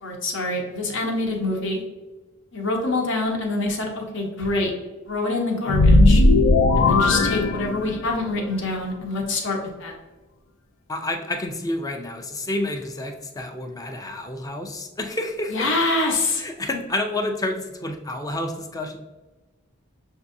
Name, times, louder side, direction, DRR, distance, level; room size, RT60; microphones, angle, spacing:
voice 1, 0.0-1.8 2.5-4.7 5.1-6.2 6.8-9.9 15.5-16.4, left 2 dB, 60° left, 1 dB, 1.0 m, -25 dB
sound 1, 5.7-8.2, left 2 dB, 90° left, 0.5 m, -17 dB
voice 2, 10.9-15.7 16.4-19.0, left 1 dB, 15° left, 4 dB, 0.5 m, -29 dB
6.9 x 2.6 x 2.6 m, 1.2 s
head